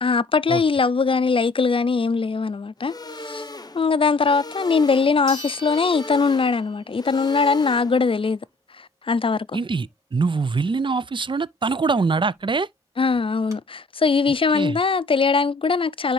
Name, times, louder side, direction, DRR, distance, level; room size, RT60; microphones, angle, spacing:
voice 1, 0.0-3.4 3.7-8.4 8.7-9.6 13.0-16.1, left 4 dB, 55° left, 0.4 m, -21 dB
sound 1, 2.8-8.2, left 2 dB, 35° left, 0.8 m, -38 dB
sound 2, 5.3-7.0 7.4-7.5 12.1-12.2 12.4-12.5 13.1-13.5, equal, 30° right, 2.9 m, -40 dB
voice 2, 9.5-12.7 14.5-14.8, right 4 dB, 45° right, 0.4 m, -23 dB
10.0 x 3.4 x 3.2 m
wide cardioid pair, 45°, 11 cm